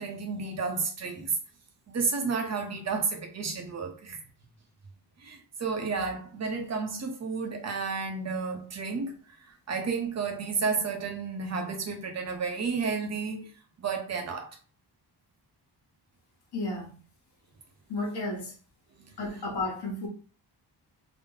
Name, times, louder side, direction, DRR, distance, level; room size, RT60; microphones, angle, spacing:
voice 1, 0.0-1.4 1.9-4.2 5.2-9.2 9.7-13.5 13.8-14.6, right 4 dB, 40° right, 0.8 m, -31 dB
voice 2, 16.5-16.9 17.9-18.5 19.2-20.1, left 2 dB, 70° left, 1.2 m, -32 dB
3.5 x 2.0 x 3.8 m
wide cardioid pair, 160°, 42 cm